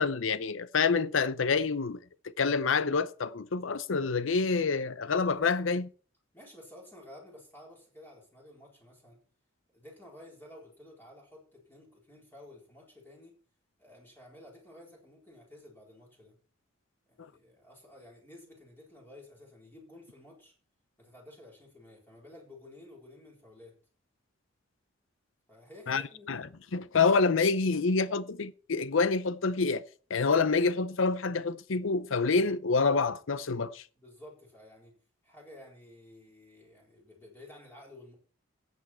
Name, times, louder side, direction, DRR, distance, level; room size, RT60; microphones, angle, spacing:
voice 1, 0.0-2.0 2.4-5.9 25.9-26.0 26.3-26.4 26.7-33.8, left 4 dB, 75° left, 0.6 m, -27 dB
voice 2, 6.3-9.2 9.7-13.4 13.8-16.4 17.1-20.5 21.0-23.8 25.5-26.3 34.0-38.1, left 1 dB, 10° left, 4.2 m, -53 dB
14.0 x 8.3 x 4.5 m
head